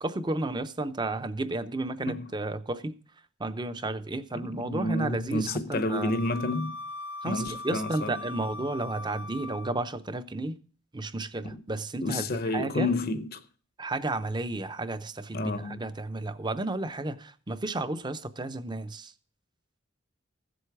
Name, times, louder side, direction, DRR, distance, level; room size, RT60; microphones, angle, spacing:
voice 1, 0.0-2.9 3.4-6.1 7.2-10.6 10.9-12.3 12.5-12.9 13.8-19.1, right 2 dB, 20° right, 0.7 m, -32 dB
voice 2, 4.3-6.8 7.2-8.1 11.4-11.6 12.0-13.4 15.3-15.8, left 2 dB, 50° left, 0.7 m, -30 dB
Wind instrument woodwind instrument, 5.9-9.9, left 2 dB, 80° left, 0.7 m, -40 dB
14.5 x 7.9 x 4.7 m
head